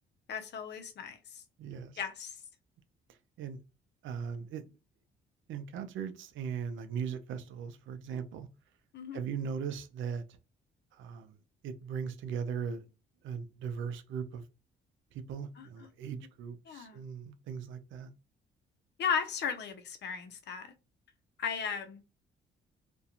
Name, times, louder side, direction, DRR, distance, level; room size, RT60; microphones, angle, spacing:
voice 1, 0.3-1.4 2.0-2.4 8.9-9.2 15.6-15.9 16.7-17.0 19.0-20.7 21.4-22.0, left 7 dB, 60° left, 0.6 m, -36 dB
voice 2, 1.6-2.0 3.4-3.6 4.0-4.6 5.5-8.5 9.1-10.2 10.9-11.4 11.6-12.8 13.2-14.4 15.1-18.1, right 7 dB, 75° right, 0.5 m, -38 dB
2.4 x 2.2 x 2.8 m
cardioid pair, 90°, 20 cm